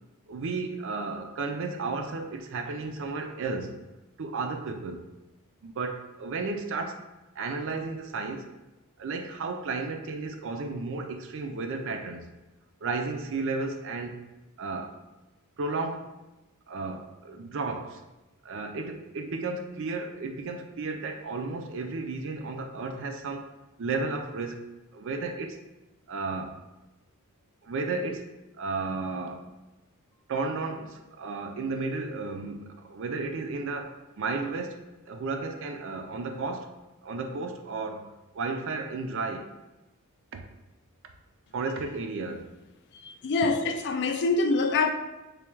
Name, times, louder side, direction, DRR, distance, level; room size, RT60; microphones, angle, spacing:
voice 1, 0.3-3.8 4.2-5.0 5.6-7.0 7.4-8.5 9.0-12.3 12.8-14.2 14.6-15.0 15.6-16.1 16.7-18.0 18.4-23.5 23.8-24.6 24.9-25.6 26.1-26.6 27.6-28.3 28.6-29.5 30.3-36.7 37.0-38.1 38.3-39.6 40.3-40.5 41.5-42.5, right 3 dB, 60° right, 5 dB, 0.4 m, -33 dB
voice 2, 43.0-44.9, left 3 dB, 50° left, 6 dB, 0.3 m, -25 dB
3.4 x 2.3 x 4.4 m, 1.0 s
head